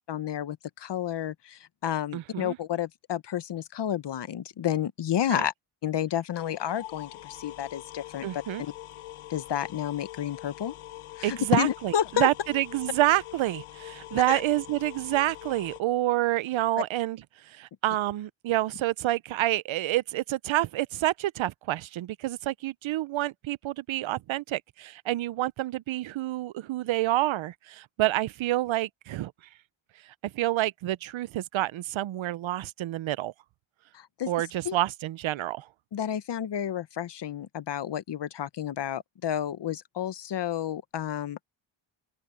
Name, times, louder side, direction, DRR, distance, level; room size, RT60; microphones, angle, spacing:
voice 1, 0.1-5.5 5.8-8.7 9.3-10.7 11.2-12.3 14.3-14.4 33.9-34.3 34.6-34.8 35.9-41.4, left 10 dB, 55° left, 1.1 m, -30 dB
voice 2, 2.1-2.6 5.3-5.5 8.2-8.6 11.2-17.2 17.5-29.3 30.2-33.3 34.3-35.7, right 15 dB, 70° right, 0.7 m, -28 dB
sound 1, 6.3-15.8, left 15 dB, 80° left, 0.9 m, -44 dB
open air
cardioid pair, 85°, 49 cm